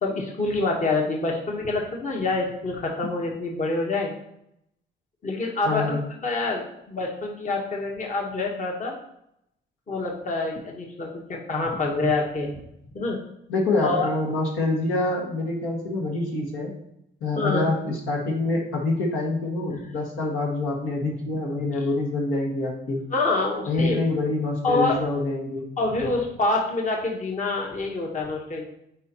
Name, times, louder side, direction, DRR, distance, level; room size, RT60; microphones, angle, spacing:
voice 1, 0.0-4.1 5.2-8.9 9.9-12.5 12.9-13.2 13.8-14.1 17.4-17.7 23.1-24.0 24.6-25.0 25.8-28.6, left 3 dB, 40° left, 0 dB, 1.2 m, -26 dB
voice 2, 5.6-6.0 13.5-16.7 17.2-23.0 23.7-25.7, left 2 dB, 80° left, -1 dB, 1.8 m, -26 dB
9.1 x 4.4 x 2.9 m, 0.78 s
cardioid pair, 90°, 20 cm